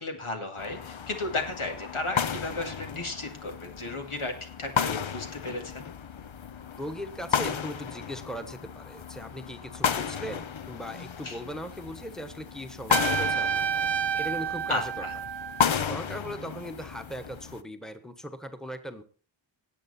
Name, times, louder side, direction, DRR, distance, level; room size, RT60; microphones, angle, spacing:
voice 1, 0.0-5.9 11.2-11.4 14.7-15.1, left 2 dB, 90° left, 3 dB, 2.4 m, -34 dB
sound 1, 0.6-17.6, left 7 dB, 70° left, 0.8 m, -33 dB
voice 2, 6.8-13.7 14.1-15.1 15.8-19.0, equal, ahead, 7 dB, 1.3 m, -39 dB
Trumpet, 12.9-15.7, right 8 dB, 60° right, 0.7 m, -29 dB
18.0 x 7.8 x 4.3 m, 0.41 s
wide cardioid pair, 50°, 49 cm